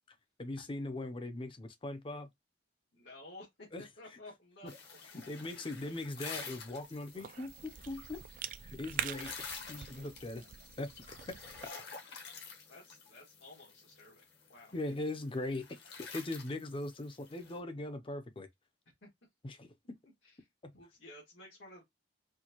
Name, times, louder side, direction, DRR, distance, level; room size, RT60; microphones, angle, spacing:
voice 1, 0.4-2.3 3.7-3.9 5.1-8.2 8.6-9.3 9.7-10.4 10.8-10.9 14.7-15.8 16.1-18.5 19.4-19.7 20.6-20.7, left 2 dB, 30° left, 0.6 m, -40 dB
voice 2, 2.9-4.7 5.1-5.3 12.7-14.2 14.5-14.7 19.0-19.1 20.2-20.5 20.7-21.8, left 2 dB, 85° left, 1.7 m, -53 dB
sound 1, 4.7-17.6, left 5 dB, 65° left, 1.2 m, -50 dB
Cough / Chewing mastication, 5.7-11.7, right 9 dB, 50° right, 0.3 m, -45 dB
4.4 x 2.2 x 2.9 m
head